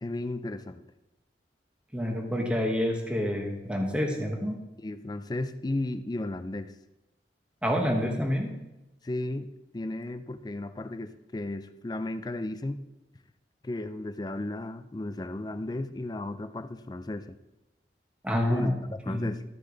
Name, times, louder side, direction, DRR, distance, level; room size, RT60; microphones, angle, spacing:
voice 1, 0.0-0.8 4.8-6.7 9.0-9.5 9.7-12.8 13.6-17.4 18.5-19.4, left 2 dB, 20° left, 11 dB, 0.4 m, -34 dB
voice 2, 1.9-4.6 7.6-8.5 18.2-18.7 19.1-19.3, equal, 5° right, 1 dB, 1.3 m, -28 dB
13.5 x 6.4 x 3.9 m, 0.98 s
head